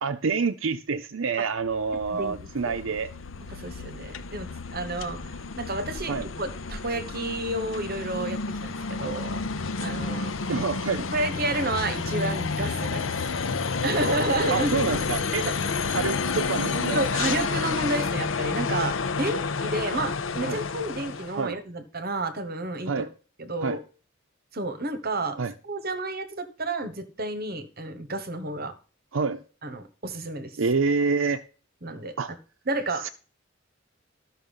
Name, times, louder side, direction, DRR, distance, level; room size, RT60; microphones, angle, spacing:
voice 1, 0.0-3.1 6.1-6.3 10.5-11.1 14.5-15.5 15.9-17.0 20.4-20.6 21.4-21.6 22.9-23.1 23.6-23.8 25.4-25.5 29.1-29.4 30.6-31.4 32.2-32.3 33.0-33.1, right 4 dB, 80° right, 0.7 m, -27 dB
sound 1, 1.6-21.4, left 4 dB, 75° left, 0.7 m, -30 dB
voice 2, 3.5-9.5 9.8-10.3 11.1-13.1 13.8-14.9 15.4-15.6 16.9-23.1 23.4-23.8 24.5-28.7 29.6-30.5 31.8-32.2 32.7-33.1, right 2 dB, 50° right, 1.4 m, -31 dB
13.5 x 6.1 x 5.5 m
head